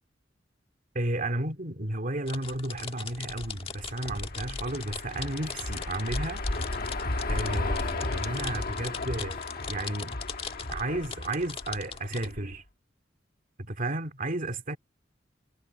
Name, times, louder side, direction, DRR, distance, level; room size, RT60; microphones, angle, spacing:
voice 1, 0.9-6.5 7.3-10.2 10.7-12.6 13.6-14.8, right 1 dB, 45° right, 2.4 m, -33 dB
sound 1, 2.3-12.3, left 6 dB, 30° left, 1.5 m, -40 dB
sound 2, 3.3-12.5, left 2 dB, 55° left, 1.3 m, -34 dB
head